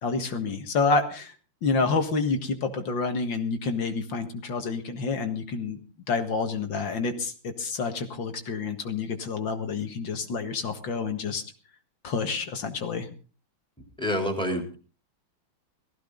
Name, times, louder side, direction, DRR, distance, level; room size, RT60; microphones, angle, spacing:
voice 1, 0.0-1.3 1.6-5.8 6.1-11.4 12.0-13.1, left 4 dB, 65° left, 6 dB, 2.5 m, -28 dB
voice 2, 13.8-14.8, equal, ahead, 3 dB, 3.4 m, -28 dB
19.0 x 15.0 x 4.0 m, 0.37 s
omnidirectional pair, 2.3 m